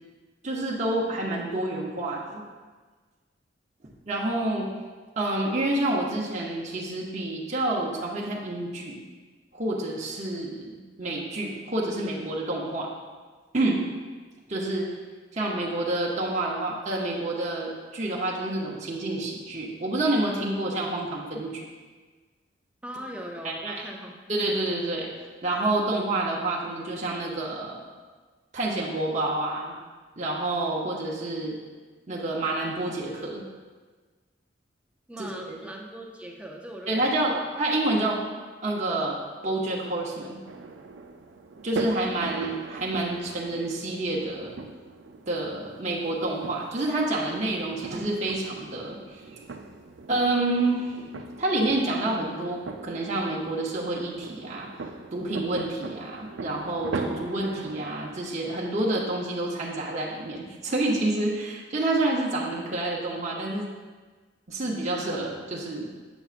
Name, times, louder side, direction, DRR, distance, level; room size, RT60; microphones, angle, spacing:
voice 1, 0.4-2.4 4.1-4.7 5.2-9.0 9.5-12.9 13.5-13.8 14.5-14.9 15.3-21.6 23.4-23.8 24.3-25.1 25.4-27.8 28.5-29.8 30.2-31.6 32.1-33.4 35.2-35.6 36.9-38.2 38.6-39.2 39.4-40.4 41.6-44.5 45.3-49.4 50.1-50.9 51.4-54.7 55.1-63.7 64.5-65.9, right 2 dB, 40° right, -4 dB, 0.8 m, -28 dB
voice 2, 22.8-24.2 35.1-37.5, equal, 5° right, 0 dB, 0.5 m, -40 dB
sound 1, 40.5-58.2, right 3 dB, 75° right, 0.5 m, -40 dB
8.0 x 7.0 x 2.5 m, 1.4 s
head